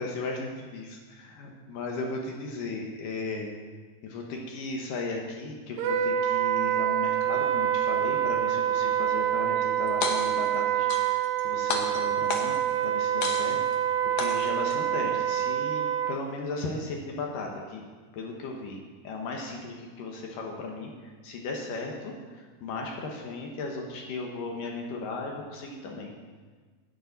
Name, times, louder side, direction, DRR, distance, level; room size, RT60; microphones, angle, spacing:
voice 1, 0.0-3.6 4.0-12.6 12.8-17.8 18.1-26.1, left 3 dB, 70° left, 1 dB, 2.3 m, -36 dB
Wind instrument woodwind instrument, 5.8-16.2, right 10 dB, 80° right, 2.0 m, -26 dB
sound 1, 9.9-10.5 10.9-11.4 11.7-12.7 13.2-13.8 14.2-14.8, left 5 dB, 90° left, 1.6 m, -32 dB
11.0 x 9.4 x 4.0 m, 1.5 s
omnidirectional pair, 4.6 m